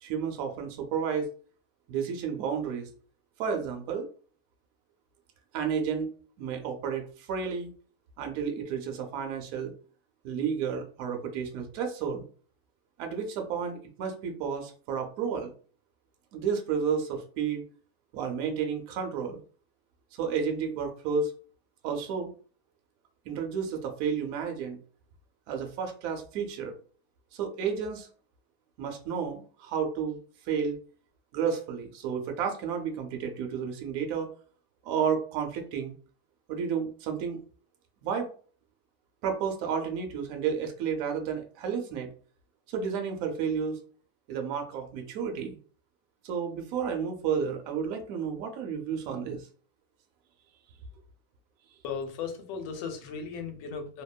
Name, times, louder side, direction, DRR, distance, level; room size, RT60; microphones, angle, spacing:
voice 1, 0.0-1.3 1.9-2.9 3.4-4.1 5.5-7.7 8.2-9.7 10.2-12.2 13.0-15.5 16.3-17.6 18.1-19.4 20.1-21.3 21.8-22.3 23.3-24.8 25.5-26.7 27.3-28.1 28.8-30.2 30.5-30.8 31.3-34.3 34.8-35.9 36.5-37.4 38.0-38.3 39.2-42.1 42.7-43.8 44.3-45.6 46.2-49.5, right 6 dB, 75° right, 4 dB, 0.8 m, -31 dB
voice 2, 51.8-54.0, left 5 dB, 80° left, 5 dB, 1.2 m, -36 dB
2.8 x 2.1 x 2.2 m, 0.42 s
omnidirectional pair, 1.9 m